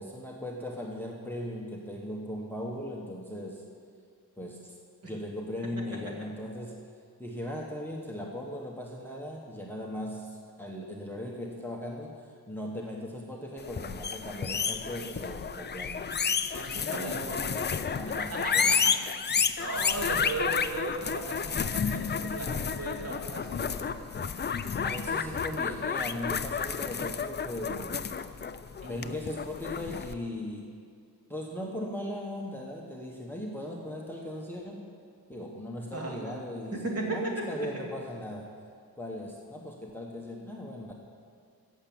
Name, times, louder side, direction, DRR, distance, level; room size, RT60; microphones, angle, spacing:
voice 1, 0.0-3.7 4.4-4.8 5.0-6.8 7.2-16.2 16.8-17.3 17.9-19.0 24.8-28.0 28.9-30.7 31.3-34.9 35.3-38.5 39.0-40.9, left 1 dB, 5° left, -1 dB, 1.0 m, -38 dB
sound 1, 13.6-30.1, left 6 dB, 30° left, 0.4 m, -31 dB
voice 2, 16.5-17.7 18.3-18.9 19.6-23.7 24.0-24.1 28.8-29.1 35.9-36.4 36.7-37.7, right 2 dB, 40° right, -1 dB, 2.5 m, -36 dB
15.0 x 7.2 x 8.6 m, 2.2 s
wide cardioid pair, 175°, 37 cm